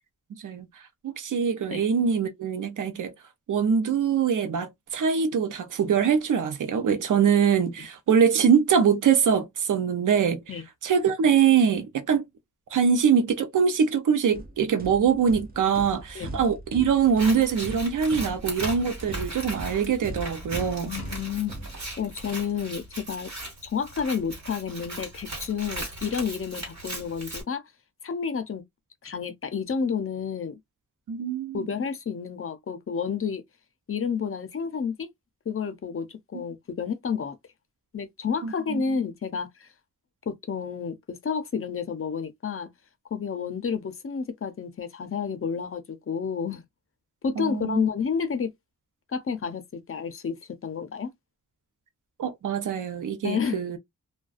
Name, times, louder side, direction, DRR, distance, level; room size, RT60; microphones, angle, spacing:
voice 1, 1.0-3.1 3.5-10.4 10.8-12.3 12.7-20.9 31.1-31.7 38.4-38.8 47.4-47.8 52.2-53.8, right 7 dB, 85° right, 0.6 m, -23 dB
sound 1, 14.3-22.3, right 2 dB, 30° right, 0.6 m, -40 dB
Scissors, 17.0-27.4, right 1 dB, 65° right, 1.5 m, -38 dB
voice 2, 20.9-21.5 22.0-23.3 23.6-27.6 28.0-28.6 29.0-30.6 31.5-33.4 33.9-35.1 35.5-37.4 37.9-39.7 40.3-42.7 43.1-46.6 47.2-48.5 49.1-50.4 50.6-51.1 53.2-53.6, left 6 dB, 45° left, 0.5 m, -30 dB
2.4 x 2.2 x 2.4 m
wide cardioid pair, 85°, 30 cm